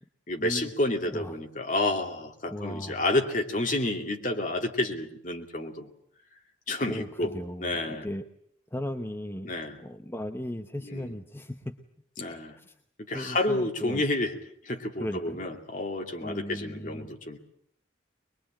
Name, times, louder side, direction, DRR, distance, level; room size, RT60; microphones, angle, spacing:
voice 1, 0.3-5.9 6.7-7.3 7.6-8.0 9.4-9.8 10.9-11.1 12.2-12.5 13.1-14.3 14.6-17.4, left 2 dB, 40° left, 4 dB, 2.5 m, -30 dB
voice 2, 2.5-3.0 6.9-8.2 8.7-11.8 12.6-12.7 13.1-14.0 15.0-15.5 16.2-17.1, left 1 dB, 10° left, 6 dB, 0.9 m, -37 dB
22.5 x 22.5 x 8.8 m, 0.65 s
head